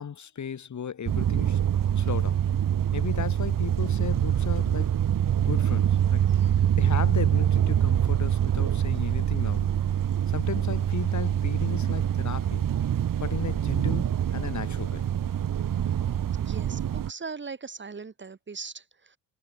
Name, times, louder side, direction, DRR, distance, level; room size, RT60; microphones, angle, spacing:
voice 1, 0.0-1.6 2.0-2.4 2.9-4.9 5.4-9.7 10.3-12.7 13.2-15.0, left 7 dB, 55° left, 2.5 m, -35 dB
sound 1, 1.1-17.1, right 10 dB, 70° right, 1.5 m, -25 dB
voice 2, 16.4-19.2, right 5 dB, 35° right, 1.7 m, -39 dB
wide cardioid pair, 120°, 34 cm